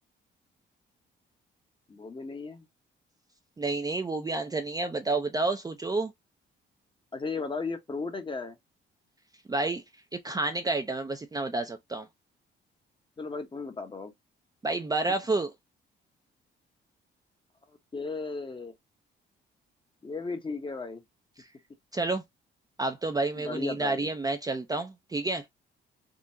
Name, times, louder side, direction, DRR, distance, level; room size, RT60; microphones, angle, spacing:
voice 1, 1.9-2.7 7.1-8.6 13.2-14.1 17.9-18.7 20.0-21.0 23.4-24.1, left 4 dB, 25° left, 0.8 m, -35 dB
voice 2, 3.6-6.1 9.5-9.8 10.1-12.1 14.6-15.5 21.4-21.5 21.9-22.2 22.8-25.4, right 3 dB, 20° right, 0.5 m, -30 dB
3.7 x 2.0 x 2.5 m
cardioid pair, 90°, 20 cm